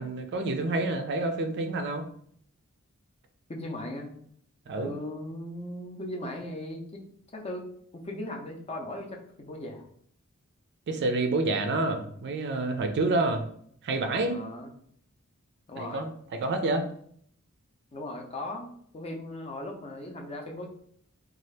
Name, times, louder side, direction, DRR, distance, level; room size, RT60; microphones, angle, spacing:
voice 1, 0.0-2.0 4.7-4.9 10.9-13.5 13.8-14.4 15.8-16.1 16.4-16.9, right 2 dB, 50° right, 7 dB, 0.4 m, -28 dB
voice 2, 3.5-4.1 4.8-7.0 7.3-9.9 14.3-14.7 15.7-16.0 17.9-20.7, left 1 dB, 30° left, 2 dB, 0.5 m, -38 dB
2.7 x 2.4 x 3.2 m, 0.63 s
head